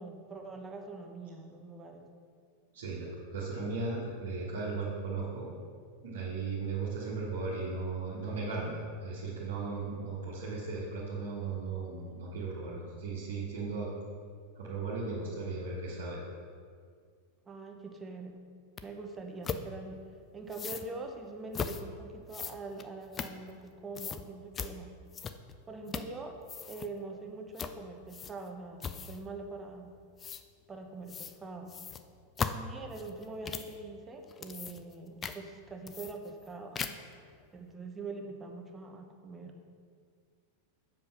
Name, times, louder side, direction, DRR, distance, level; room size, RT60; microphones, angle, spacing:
voice 1, 0.0-2.0 17.4-18.4 18.8-20.0 20.3-24.9 25.7-26.4 26.7-29.9 30.7-31.8 32.5-39.5, right 3 dB, 15° right, 3 dB, 1.0 m, -44 dB
voice 2, 2.7-5.5 6.0-13.9 14.5-16.2, right 4 dB, 60° right, -7 dB, 1.5 m, -36 dB
sound 1, 18.8-18.9 19.4-19.6 20.5-20.9 21.5-21.8 22.3-23.7 23.9-24.2 24.5-24.7 25.1-25.5 25.9-26.2 26.4-26.9 27.6-27.8 28.1-28.5 28.8-29.2 30.2-30.4 31.1-31.4 31.7-33.7 34.2-34.9 35.2-35.4 35.9-36.5 36.7-37.1, left 6 dB, 20° left, 0.4 m, -38 dB
7.5 x 5.3 x 5.6 m, 2.1 s
figure-of-eight pair, 90°, 0 cm